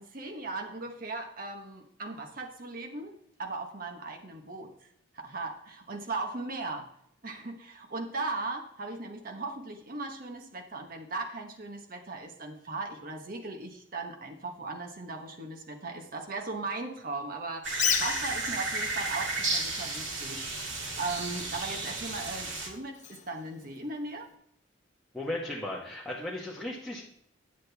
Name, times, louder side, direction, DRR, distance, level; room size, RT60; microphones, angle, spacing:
voice 1, 0.0-4.7 5.1-6.9 7.2-24.3, right 3 dB, 45° right, 3 dB, 1.1 m, -38 dB
sound 1, 17.6-22.7, right 2 dB, 65° right, 2.2 m, -33 dB
Bird, 17.7-24.3, left 8 dB, 40° left, 0.7 m, -37 dB
voice 2, 25.1-27.0, left 1 dB, ahead, -6 dB, 1.3 m, -36 dB
10.0 x 7.7 x 3.4 m, 0.70 s
head